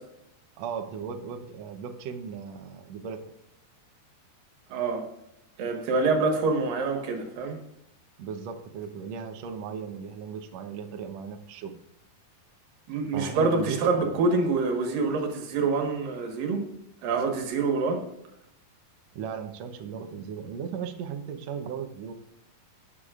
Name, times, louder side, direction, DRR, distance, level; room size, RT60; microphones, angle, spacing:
voice 1, 0.6-3.2 8.2-11.7 13.1-14.2 19.1-22.1, right 6 dB, 85° right, 6 dB, 1.4 m, -36 dB
voice 2, 4.7-5.1 5.6-7.6 12.9-16.6 17.0-18.0, right 3 dB, 70° right, 3 dB, 3.1 m, -26 dB
17.0 x 8.3 x 2.5 m, 0.84 s
omnidirectional pair, 4.3 m